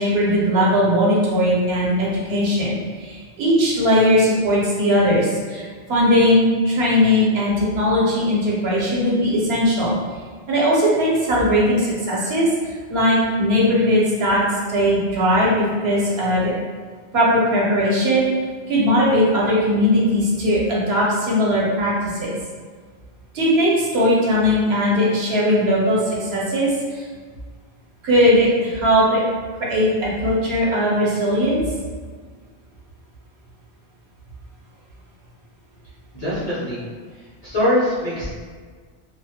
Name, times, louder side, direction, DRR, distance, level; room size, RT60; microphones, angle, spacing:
voice 1, 0.0-9.9 10.5-14.4 14.7-16.5 17.1-18.3 18.7-22.3 23.3-27.1 28.0-29.2 29.6-31.6, equal, 70° right, -5 dB, 0.9 m, -19 dB
voice 2, 36.1-36.8 37.4-38.4, left 1 dB, 40° left, -10 dB, 0.7 m, -22 dB
2.3 x 2.0 x 2.7 m, 1.5 s
omnidirectional pair, 1.1 m